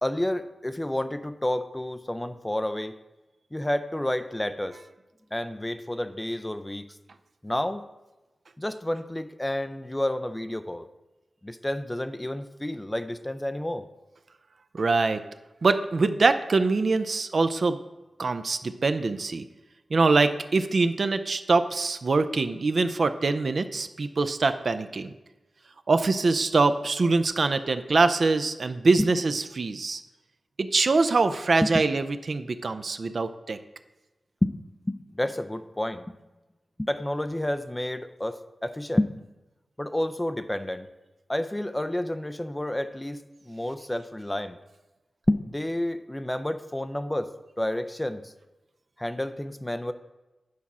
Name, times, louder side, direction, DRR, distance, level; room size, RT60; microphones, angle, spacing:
voice 1, 0.0-3.0 3.5-4.8 5.3-6.9 7.4-7.8 8.6-10.9 11.4-13.8 29.0-29.1 31.6-31.7 34.4-34.5 34.9-36.1 36.8-39.1 39.8-40.9 41.3-44.6 45.3-47.3 47.6-48.3 49.0-49.9, left 1 dB, 10° left, 10 dB, 0.4 m, -30 dB
voice 2, 14.7-15.2 15.6-17.8 18.2-19.4 19.9-25.1 25.9-30.0 30.6-33.6, right 3 dB, 55° right, 10 dB, 0.5 m, -24 dB
9.4 x 4.2 x 6.0 m, 1.1 s
wide cardioid pair, 130°, 0 cm